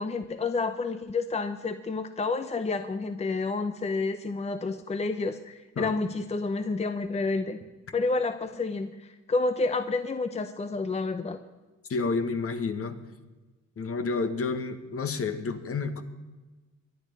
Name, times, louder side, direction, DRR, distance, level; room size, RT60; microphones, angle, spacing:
voice 1, 0.0-7.6 7.9-11.4, left 3 dB, 20° left, 10 dB, 0.7 m, -29 dB
voice 2, 11.9-13.0 13.8-16.0, left 4 dB, 50° left, 9 dB, 1.6 m, -30 dB
23.0 x 9.1 x 5.4 m, 1.2 s
cardioid pair, 90°, 30 cm